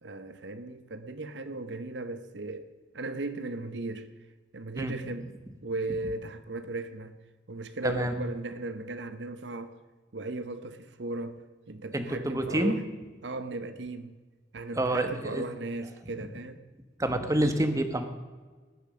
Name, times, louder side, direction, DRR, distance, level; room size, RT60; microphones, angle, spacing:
voice 1, 0.0-2.7 2.9-4.1 4.5-5.3 5.6-7.2 7.5-9.7 10.1-12.8 13.2-14.2 14.5-16.6, right 2 dB, 70° right, 0.8 m, -37 dB
voice 2, 7.8-8.1 11.9-12.7 14.8-15.4 17.0-18.0, right 1 dB, 20° right, 1.2 m, -27 dB
19.5 x 7.0 x 6.2 m
head